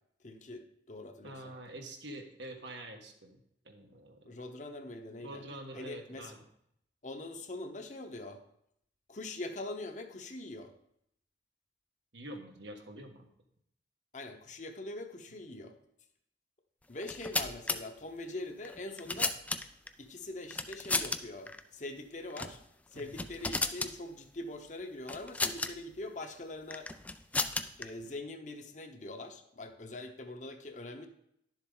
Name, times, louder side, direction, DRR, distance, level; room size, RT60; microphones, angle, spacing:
voice 1, 0.2-1.5 4.2-5.4 5.7-6.3 7.0-8.4 9.1-10.7 14.1-15.8 16.9-19.4 20.0-22.6 22.9-26.9 27.8-31.1, left 2 dB, 40° left, 5 dB, 0.9 m, -43 dB
voice 2, 1.2-4.3 5.2-6.4 12.1-13.3 22.9-23.2, right 1 dB, 80° right, 3 dB, 1.5 m, -46 dB
sound 1, 17.0-17.8 18.6-19.9 20.5-21.2 21.5-21.6 22.3-22.6 22.9-23.9 25.1-25.7 26.7-27.8, left 3 dB, 10° left, 0.3 m, -33 dB
11.0 x 7.3 x 3.9 m, 0.74 s
head